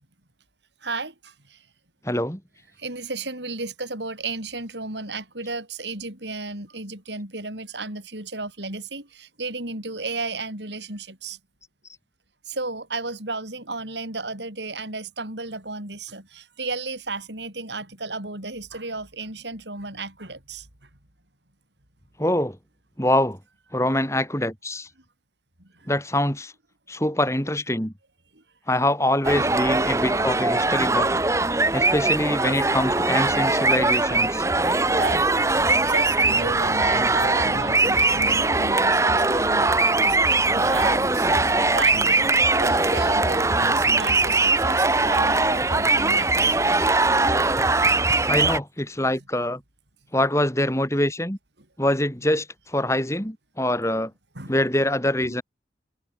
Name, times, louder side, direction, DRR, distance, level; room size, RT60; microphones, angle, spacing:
voice 1, 0.8-1.6 2.8-11.4 12.5-20.7 25.6-25.9 28.3-28.4 30.0-30.1 34.9-46.6 54.4-54.6 55.2-55.4, right 3 dB, 80° right, 7.8 m, -34 dB
voice 2, 2.0-2.4 22.2-22.6 23.0-23.4 23.7-24.9 25.9-26.5 26.9-27.9 28.7-31.2 31.7-34.5 48.3-49.6 50.1-51.4 51.8-54.1 54.5-55.4, left 1 dB, 15° left, 7.0 m, -24 dB
sound 1, 29.2-48.6, right 3 dB, 15° right, 1.2 m, -21 dB
head